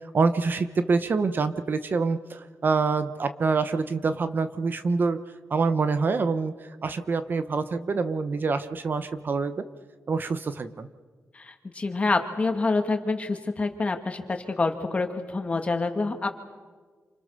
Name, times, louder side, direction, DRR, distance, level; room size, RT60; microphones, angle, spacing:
voice 1, 0.1-5.2 5.5-6.5 6.8-9.6 10.1-10.9, right 4 dB, 45° right, 11 dB, 1.0 m, -26 dB
voice 2, 11.3-16.3, left 3 dB, 25° left, 5 dB, 2.5 m, -27 dB
27.5 x 26.0 x 6.7 m, 1.5 s
wide cardioid pair, 140°, 5 cm